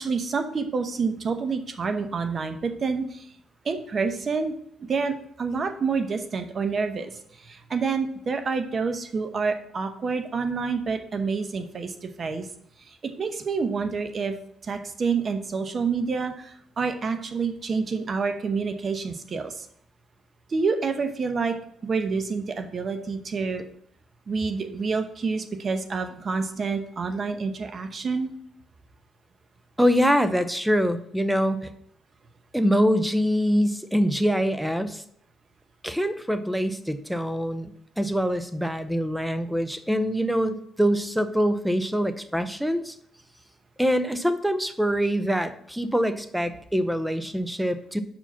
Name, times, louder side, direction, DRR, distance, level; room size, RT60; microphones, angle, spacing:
voice 1, 0.0-3.3 3.6-4.5 4.8-7.1 7.4-12.5 12.9-14.3 14.6-19.7 20.5-21.5 21.8-23.7 24.3-28.3, right 4 dB, 45° right, 7 dB, 0.9 m, -28 dB
voice 2, 29.8-31.7 32.5-35.0 35.8-43.0 43.8-48.0, equal, 5° right, 11 dB, 0.6 m, -24 dB
5.7 x 4.9 x 5.7 m, 0.69 s
cardioid pair, 90°, 0 cm